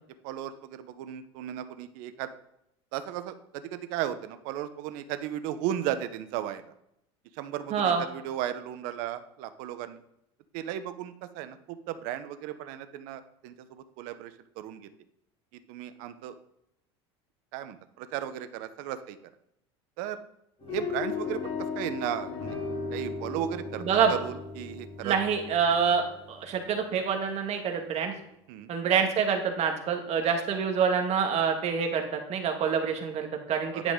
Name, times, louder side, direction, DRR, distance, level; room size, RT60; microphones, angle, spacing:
voice 1, 0.2-2.3 2.9-6.6 7.3-10.0 10.5-14.9 15.5-16.3 17.5-19.2 20.0-20.2 20.7-22.6 22.9-25.2 28.5-28.7 33.7-33.9, right 11 dB, 65° right, 11 dB, 0.9 m, -35 dB
voice 2, 7.7-8.0 23.8-24.1 25.0-28.1 28.7-33.9, right 6 dB, 50° right, 4 dB, 1.8 m, -26 dB
sound 1, 20.6-26.9, left 5 dB, 40° left, 3.3 m, -36 dB
10.5 x 4.9 x 3.7 m, 0.80 s
hypercardioid pair, 90°, 14 cm